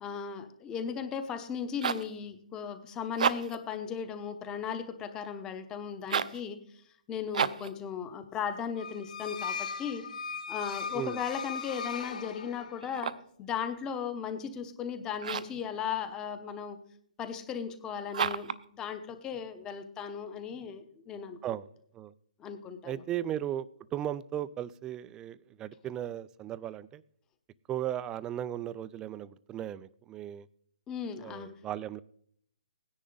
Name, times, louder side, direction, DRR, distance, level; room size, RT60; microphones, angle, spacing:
voice 1, 0.0-10.0 10.5-16.8 17.2-21.4 22.4-23.0 30.9-31.5, left 7 dB, 15° left, 10 dB, 1.0 m, -37 dB
sound 1, 1.5-2.1 3.1-3.7 6.0-6.4 7.3-7.8 12.8-13.4 15.2-15.6 18.1-18.6, right 7 dB, 65° right, 0.7 m, -31 dB
sound 2, 8.8-12.9, left 6 dB, 65° left, 1.6 m, -38 dB
voice 2, 22.8-23.7 23.9-27.0 27.7-30.5 31.2-32.0, right 11 dB, 15° right, 19 dB, 0.4 m, -36 dB
17.5 x 10.0 x 3.9 m, 0.67 s
hypercardioid pair, 150°, 4 cm